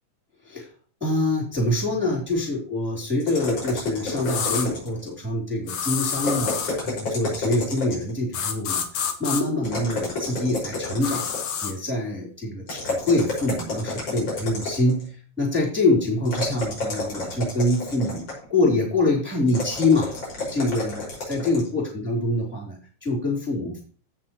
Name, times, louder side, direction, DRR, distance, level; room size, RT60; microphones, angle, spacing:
voice 1, 1.0-11.3 11.6-20.1 20.5-23.8, left 2 dB, 5° right, -3 dB, 3.5 m, -25 dB
sound 1, 3.2-5.1 6.1-8.2 9.6-11.6 12.7-15.0 16.2-18.5 19.5-21.7, left 2 dB, 55° left, 6.6 m, -30 dB
sound 2, 4.2-4.7 5.7-6.7 8.3-9.4 11.0-11.7, left 7 dB, 75° left, 2.8 m, -28 dB
16.5 x 6.5 x 3.1 m, 0.41 s
omnidirectional pair, 3.4 m